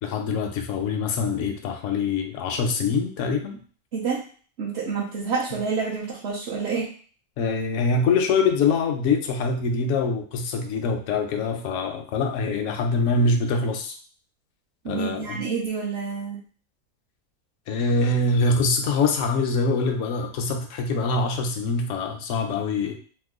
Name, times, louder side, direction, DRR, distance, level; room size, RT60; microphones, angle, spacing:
voice 1, 0.0-3.6 7.4-13.9 14.9-15.4 17.7-23.0, left 3 dB, 70° left, 4 dB, 0.9 m, -24 dB
voice 2, 3.9-4.2 4.6-6.9 14.8-16.4, right 5 dB, 55° right, -6 dB, 0.8 m, -28 dB
2.9 x 2.2 x 3.5 m, 0.43 s
omnidirectional pair, 1.5 m